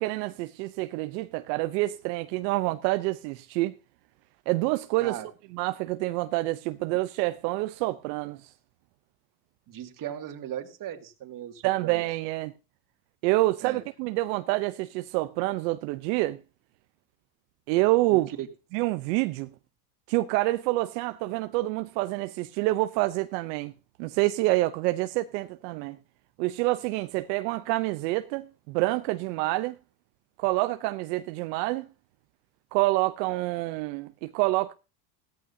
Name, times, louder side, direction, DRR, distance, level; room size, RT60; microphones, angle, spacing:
voice 1, 0.0-3.7 4.5-5.2 5.5-8.4 11.6-12.5 13.2-16.4 17.7-18.3 18.7-19.5 20.1-23.7 24.0-26.0 26.4-29.8 30.4-31.9 32.7-34.7, right 19 dB, 75° right, 0.8 m, -27 dB
voice 2, 9.7-12.0 13.6-13.8 18.1-18.5, right 11 dB, 40° right, 2.3 m, -37 dB
16.5 x 14.0 x 2.7 m
supercardioid pair, 120°, 49 cm